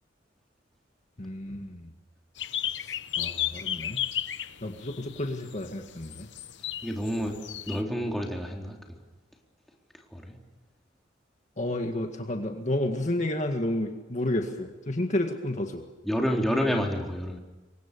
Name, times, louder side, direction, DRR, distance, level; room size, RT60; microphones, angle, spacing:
voice 1, 1.2-1.9 2.8-4.0 4.6-6.3 11.6-15.8, left 1 dB, 40° left, 4 dB, 1.9 m, -31 dB
sound 1, 2.4-7.8, left 11 dB, 75° left, 0.9 m, -34 dB
voice 2, 6.8-7.4 7.7-8.8 10.1-10.4 16.0-17.4, equal, ahead, 0 dB, 3.8 m, -28 dB
27.5 x 24.0 x 7.0 m, 1.1 s
head